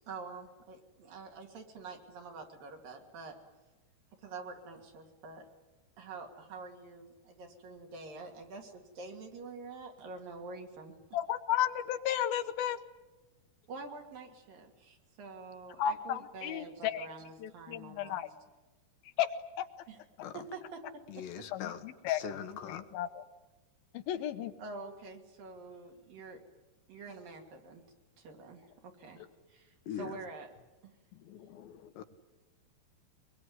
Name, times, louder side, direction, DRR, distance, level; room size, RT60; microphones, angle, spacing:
voice 1, 0.0-3.4 4.2-5.5 6.0-10.9 13.7-18.2 19.9-20.0 20.3-21.4 24.1-24.2 24.6-26.4 26.9-27.8 28.2-29.2 29.5-30.5 30.8-30.9, right 3 dB, 60° right, 2 dB, 4.2 m, -47 dB
voice 2, 11.1-12.8 15.8-17.1 17.4-18.3 19.2-19.3 19.6-19.7 21.5-22.2 22.7-23.2 23.9-24.5 31.3-31.9, left 11 dB, 70° left, 11 dB, 2.7 m, -33 dB
voice 3, 21.1-22.9 29.2-29.3 29.9-30.2 32.0-32.1, left 9 dB, 90° left, 7 dB, 3.8 m, -42 dB
23.5 x 22.5 x 9.7 m, 1.1 s
omnidirectional pair, 4.7 m